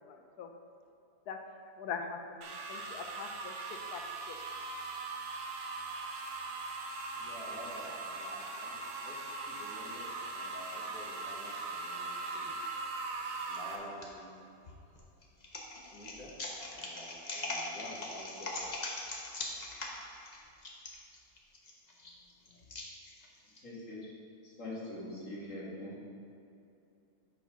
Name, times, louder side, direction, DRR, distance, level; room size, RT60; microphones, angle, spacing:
voice 1, 0.1-0.5 1.3-1.4 1.8-3.5 3.9-4.0 4.3-4.4, left 6 dB, 90° left, 4 dB, 1.3 m, -42 dB
sound 1, 2.4-13.8, right 3 dB, 75° right, 1.3 m, -40 dB
voice 2, 7.1-12.6 13.2-14.4 15.7-16.3 16.7-18.7, left 1 dB, 70° left, -4 dB, 1.9 m, -49 dB
sound 2, 13.5-14.1 14.6-23.6, left 2 dB, 35° left, 0.9 m, -41 dB
voice 3, 23.6-24.0 24.4-26.0, left 1 dB, 55° left, -6 dB, 2.3 m, -42 dB
8.2 x 4.5 x 5.4 m, 2.7 s
omnidirectional pair, 1.6 m